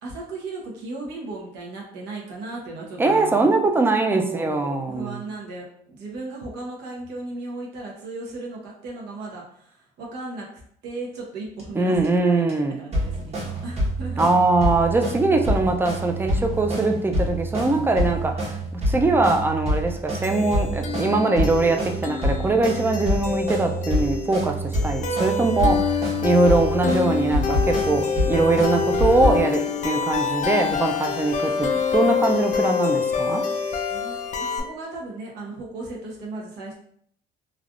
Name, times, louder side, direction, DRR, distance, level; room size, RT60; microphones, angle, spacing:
voice 1, 0.0-3.5 4.1-10.5 10.8-14.3 15.3-15.8 33.9-36.7, right 2 dB, 80° right, -2 dB, 0.9 m, -36 dB
voice 2, 3.0-5.2 11.7-12.8 14.2-33.4, right 2 dB, 15° right, 4 dB, 0.4 m, -22 dB
sound 1, 11.6-11.7 12.0-12.1 12.5-12.6 12.9-29.4, equal, 40° right, 1.1 m, -27 dB
sound 2, 20.2-34.6, left 5 dB, 50° left, 0.5 m, -26 dB
3.3 x 2.4 x 2.4 m, 0.65 s
cardioid pair, 110°, 17 cm